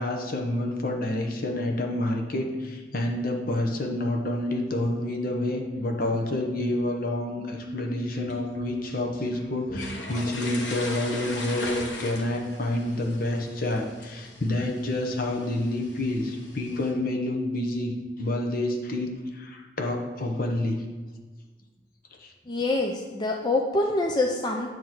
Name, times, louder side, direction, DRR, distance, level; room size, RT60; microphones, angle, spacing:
voice 1, 0.0-17.9 18.2-20.8 22.2-22.3, left 1 dB, 55° left, 2 dB, 1.0 m, -28 dB
sound 1, 8.1-16.9, left 1 dB, 85° left, 1.3 m, -39 dB
voice 2, 22.5-24.7, left 2 dB, 25° left, 1 dB, 0.5 m, -25 dB
9.2 x 3.1 x 5.9 m, 1.3 s
head